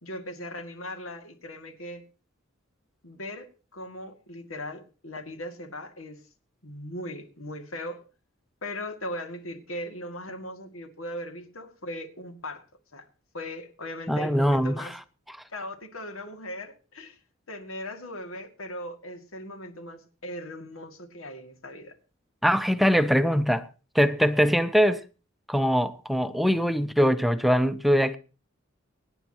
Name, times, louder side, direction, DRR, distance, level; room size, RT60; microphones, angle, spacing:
voice 1, 0.0-2.0 3.0-6.2 6.6-8.0 8.6-12.6 12.9-13.1 13.3-15.0 15.5-17.2 17.5-22.0, left 1 dB, 85° left, 2.3 m, -38 dB
voice 2, 14.1-15.0 15.3-15.4 22.4-23.7 23.9-25.0 25.5-28.2, equal, ahead, 0.5 m, -22 dB
24.5 x 9.9 x 3.0 m
head